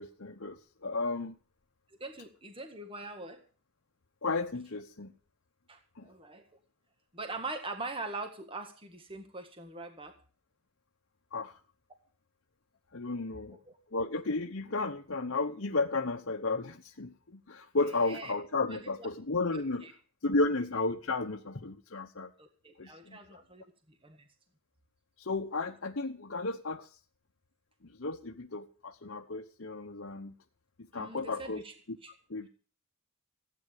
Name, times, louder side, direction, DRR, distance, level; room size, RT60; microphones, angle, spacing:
voice 1, 0.0-1.4 4.2-5.1 6.0-6.1 11.3-11.6 12.9-13.6 13.9-19.8 20.2-22.3 22.8-23.4 25.2-26.9 28.0-30.3 30.9-31.6 32.3-32.5, left 3 dB, 60° left, 3 dB, 1.0 m, -33 dB
voice 2, 2.0-3.4 5.7-6.5 7.1-10.1 13.5-13.8 17.8-18.3 18.7-19.1 19.5-19.9 22.4-24.3 30.9-31.7 32.0-32.1, right 3 dB, 25° right, 6 dB, 1.7 m, -43 dB
16.0 x 9.4 x 6.7 m, 0.40 s
head